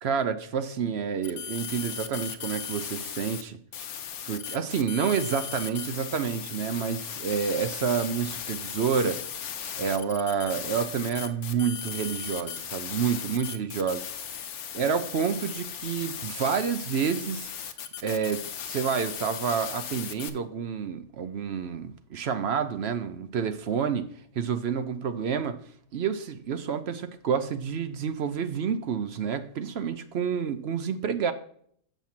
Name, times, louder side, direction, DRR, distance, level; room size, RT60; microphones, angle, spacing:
voice 1, 0.0-3.9 4.3-9.2 9.8-14.0 14.7-17.5 18.0-24.1 24.4-25.6 25.9-31.3, right 7 dB, 55° right, 10 dB, 0.8 m, -29 dB
sound 1, 1.2-3.4 3.7-20.3, left 8 dB, 85° left, 1.2 m, -37 dB
7.1 x 5.7 x 4.4 m, 0.63 s
omnidirectional pair, 1.5 m